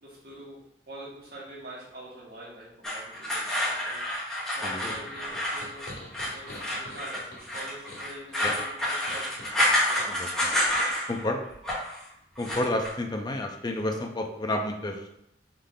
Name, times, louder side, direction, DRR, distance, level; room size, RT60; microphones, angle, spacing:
voice 1, 0.0-0.6 0.9-4.0 4.4-5.9 6.3-9.6 9.9-10.1, right 1 dB, 60° right, -6 dB, 1.6 m, -45 dB
sound 1, 2.8-11.2 11.5-12.0 12.4-12.9, left 1 dB, 5° left, 1.2 m, -29 dB
sound 2, 4.9-10.1, left 1 dB, 85° left, 1.2 m, -46 dB
voice 2, 12.4-15.1, left 1 dB, 25° left, 4 dB, 0.5 m, -30 dB
3.6 x 3.2 x 3.8 m, 0.78 s
head